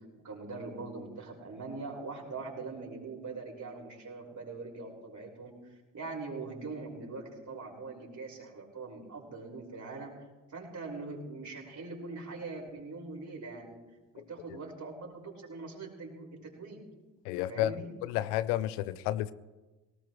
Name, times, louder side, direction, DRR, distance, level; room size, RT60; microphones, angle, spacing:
voice 1, 0.2-5.5 5.9-10.1 10.5-13.8 14.1-16.8 17.3-17.9, right 3 dB, 40° right, -2 dB, 5.6 m, -42 dB
voice 2, 17.2-17.7 18.0-19.3, left 14 dB, 85° left, 16 dB, 0.7 m, -31 dB
19.5 x 18.5 x 3.2 m, 1.2 s
hypercardioid pair, 50°, 46 cm